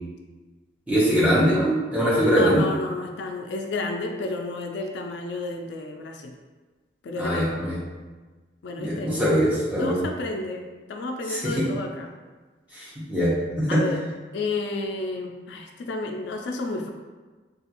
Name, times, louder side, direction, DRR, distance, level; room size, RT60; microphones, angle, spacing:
voice 1, 0.9-2.7 7.2-7.8 8.8-10.0 11.3-11.7 12.7-13.8, equal, 10° right, -8 dB, 0.8 m, -22 dB
voice 2, 2.3-6.4 7.0-7.5 8.6-9.1 9.8-12.1 13.7-14.1 14.3-16.9, left 2 dB, 75° left, 3 dB, 0.3 m, -31 dB
3.2 x 2.3 x 2.9 m, 1.3 s
head